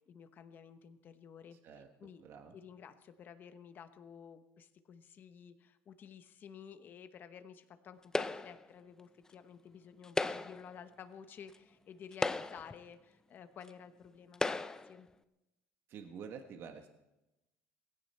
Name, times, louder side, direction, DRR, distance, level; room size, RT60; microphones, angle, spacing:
voice 1, 0.1-2.2 2.5-15.1, left 7 dB, 40° left, 10 dB, 1.0 m, -53 dB
voice 2, 2.2-2.6 15.9-16.9, right 6 dB, 50° right, 6 dB, 1.3 m, -48 dB
sound 1, 8.1-8.7 10.0-10.7 11.5-11.6 12.1-12.8 13.7-13.8 14.3-14.9, left 3 dB, 10° left, 0.5 m, -35 dB
18.0 x 16.0 x 4.4 m, 0.97 s
cardioid pair, 145°, 5 cm